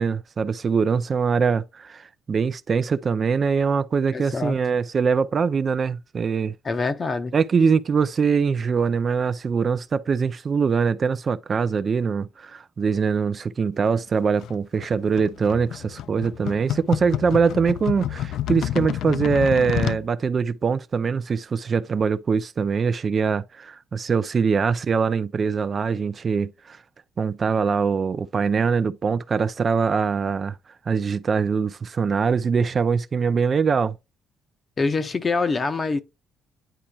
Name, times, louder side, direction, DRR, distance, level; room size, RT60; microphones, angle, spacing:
voice 1, 0.0-6.5 7.3-26.8 27.2-30.6 30.9-34.0, right 5 dB, 35° right, 0.5 m, -23 dB
voice 2, 4.1-4.5 6.6-7.3 34.8-36.0, left 4 dB, 25° left, 0.8 m, -25 dB
sound 1, 14.4-20.0, left 11 dB, 70° left, 0.4 m, -29 dB
10.0 x 4.4 x 2.3 m
cardioid pair, 145°, 0 cm